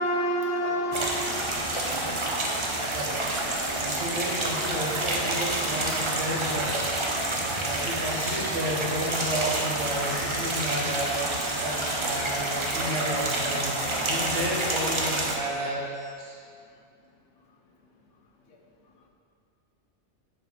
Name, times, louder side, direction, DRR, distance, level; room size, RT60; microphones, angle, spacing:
voice 1, 0.0-1.5 18.5-18.6, equal, 80° left, 1 dB, 1.2 m, -30 dB
sound 1, 0.9-15.4, right 2 dB, 30° right, 0.6 m, -28 dB
voice 2, 2.8-3.2 3.8-6.8 7.6-11.2 11.6-13.8 14.1-15.9 16.2-16.4, equal, 80° right, -3 dB, 1.5 m, -32 dB
sound 2, 7.2-16.1, equal, 15° left, 1.1 m, -45 dB
6.5 x 4.5 x 6.2 m, 2.3 s
omnidirectional pair, 1.3 m